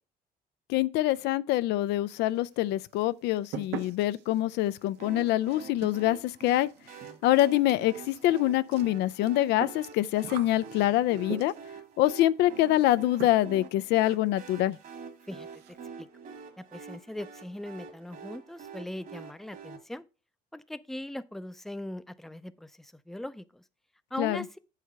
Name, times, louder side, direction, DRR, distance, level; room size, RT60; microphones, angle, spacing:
voice 1, 0.7-6.7 7.2-11.5 12.0-14.8 24.2-24.4, left 15 dB, 85° left, 0.4 m, -25 dB
sound 1, 2.1-2.6 2.9-11.8 12.8-12.9 13.2-13.7 14.0-14.1 14.4-14.5 14.8-15.0 15.3-15.8, right 9 dB, 85° right, 0.9 m, -43 dB
sound 2, 5.0-19.8, right 5 dB, 55° right, 1.8 m, -47 dB
voice 2, 16.6-20.1 20.5-23.6 24.1-24.6, left 1 dB, ahead, 0.5 m, -40 dB
7.9 x 4.9 x 5.6 m
cardioid pair, 110°, 17 cm